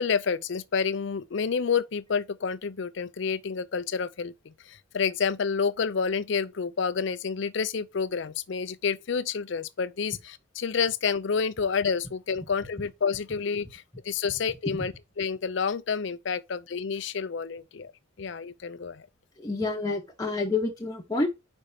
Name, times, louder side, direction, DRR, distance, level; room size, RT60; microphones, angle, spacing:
voice 1, 0.0-4.3 4.7-17.9 18.2-19.1, left 6 dB, 60° left, 0.5 m, -29 dB
voice 2, 19.4-21.3, left 3 dB, 15° left, 1.0 m, -28 dB
5.3 x 4.2 x 5.1 m
head